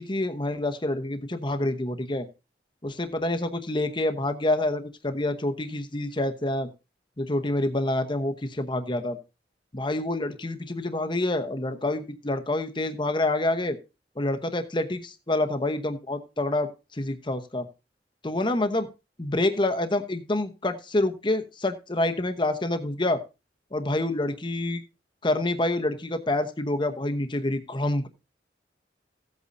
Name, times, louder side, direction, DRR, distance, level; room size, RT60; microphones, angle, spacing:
voice 1, 0.0-2.3 2.8-6.7 7.2-9.2 9.7-13.8 14.2-17.7 18.2-18.9 19.2-23.2 23.7-24.8 25.2-28.1, left 2 dB, 25° left, 7 dB, 1.0 m, -27 dB
15.5 x 8.4 x 2.7 m, 0.27 s
head